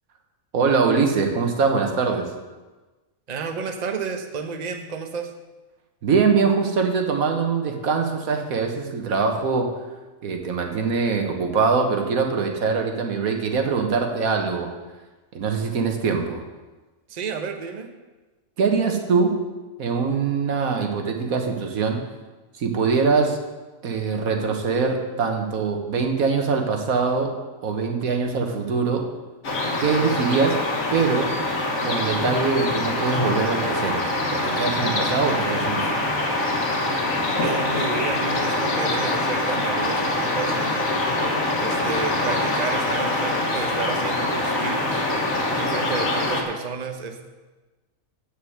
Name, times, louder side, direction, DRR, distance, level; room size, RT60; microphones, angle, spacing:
voice 1, 0.5-2.3 6.0-9.7 10.2-14.7 15.3-16.4 18.6-19.4 19.8-22.0 22.6-23.4 23.8-27.3 27.6-29.1 29.8-30.6 30.9-31.4 31.8-36.1, right 5 dB, 90° right, 3 dB, 1.6 m, -23 dB
voice 2, 3.3-5.3 17.1-17.9 37.4-40.8 41.6-45.1 45.6-47.3, right 5 dB, 35° right, 4 dB, 0.9 m, -31 dB
sound 1, 29.4-46.4, left 2 dB, 75° left, 1.9 m, -24 dB
8.0 x 6.6 x 7.9 m, 1.2 s
omnidirectional pair, 1.4 m